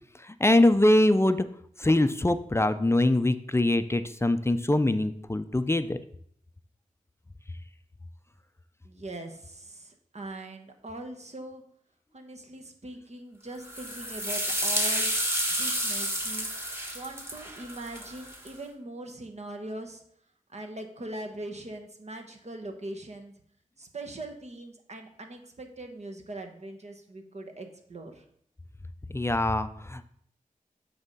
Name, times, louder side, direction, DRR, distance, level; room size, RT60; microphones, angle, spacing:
voice 1, 0.3-1.5 1.8-6.0 29.1-30.0, left 1 dB, 20° left, 11 dB, 0.4 m, -23 dB
voice 2, 8.8-11.6 12.1-15.1 15.5-16.5 16.9-20.0 20.5-23.3 23.8-28.2, right 1 dB, 50° right, 4 dB, 1.1 m, -41 dB
sound 1, 13.6-18.5, equal, 15° right, 1.6 m, -30 dB
8.0 x 3.5 x 5.3 m, 0.66 s
cardioid pair, 55°, 14 cm